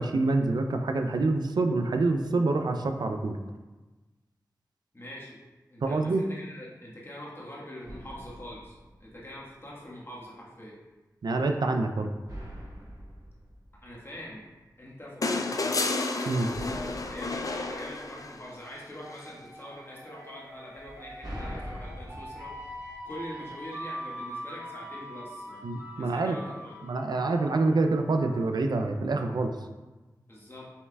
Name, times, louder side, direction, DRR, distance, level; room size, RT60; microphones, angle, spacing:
voice 1, 0.0-3.4 5.8-6.2 11.2-12.1 16.3-16.5 25.6-26.4 26.8-29.5, right 3 dB, 70° right, 5 dB, 0.3 m, -26 dB
voice 2, 4.9-5.4 5.7-8.7 9.0-10.8 13.8-14.4 14.8-15.9 16.7-22.8 23.0-25.6 25.9-26.7 30.3-30.7, left 1 dB, 35° left, -5 dB, 1.3 m, -44 dB
sound 1, 7.8-9.7 12.3-14.7 16.5-18.8 20.7-23.8, equal, 55° right, 1.1 m, -44 dB
sound 2, 15.2-18.6 20.1-20.2, left 3 dB, 50° left, 0.4 m, -31 dB
sound 3, 18.9-28.6, equal, 35° right, 0.9 m, -43 dB
5.5 x 3.2 x 2.2 m, 1.2 s
cardioid pair, 40°, 7 cm